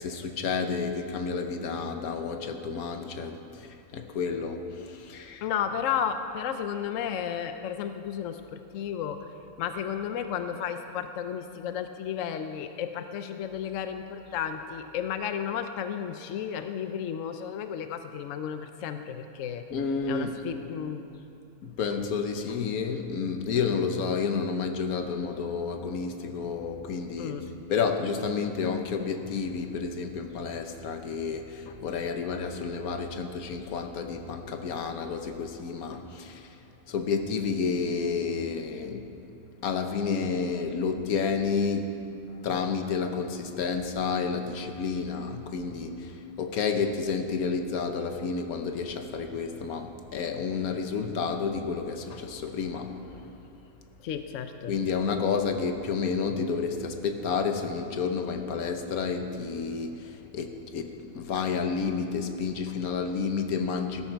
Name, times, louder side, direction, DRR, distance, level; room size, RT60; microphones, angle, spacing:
voice 1, 0.0-5.5 19.7-20.4 21.6-27.4 27.7-36.6 36.9-39.1 39.6-53.4 54.7-64.1, left 5 dB, 80° left, 6 dB, 1.4 m, -30 dB
voice 2, 5.4-9.2 9.6-19.6 20.1-21.0 27.2-27.4 54.0-54.8, left 8 dB, 65° left, 8 dB, 1.0 m, -33 dB
15.5 x 13.0 x 4.6 m, 2.7 s
omnidirectional pair, 1.5 m